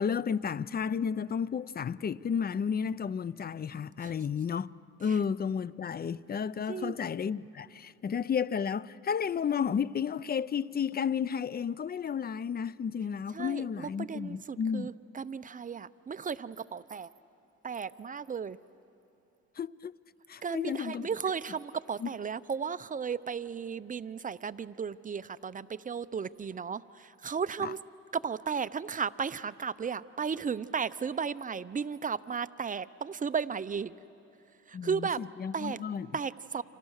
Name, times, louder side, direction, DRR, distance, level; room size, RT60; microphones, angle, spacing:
voice 1, 0.0-4.7 5.0-14.9 19.6-20.0 20.3-21.1 22.0-22.1 27.6-27.7 34.7-36.1, left 7 dB, 30° left, 0.5 m, -32 dB
voice 2, 13.3-17.1 17.6-18.6 20.4-27.8 28.1-34.0 34.7-35.2 35.5-35.8 36.1-36.6, right 6 dB, 25° right, 0.6 m, -35 dB
30.0 x 26.0 x 6.5 m
cardioid pair, 90°, 30 cm